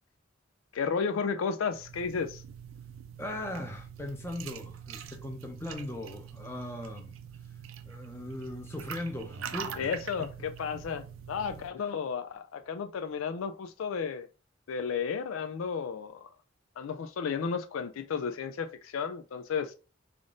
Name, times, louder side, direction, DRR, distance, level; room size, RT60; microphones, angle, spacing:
voice 1, 0.7-2.4 9.8-14.3 14.7-16.3 16.8-19.7, left 6 dB, 90° left, 0.4 m, -33 dB
sound 1, 1.7-11.7, right 7 dB, 85° right, 0.5 m, -44 dB
voice 2, 3.2-7.1 7.8-9.9, left 1 dB, 10° left, 0.6 m, -39 dB
3.5 x 2.5 x 3.8 m
head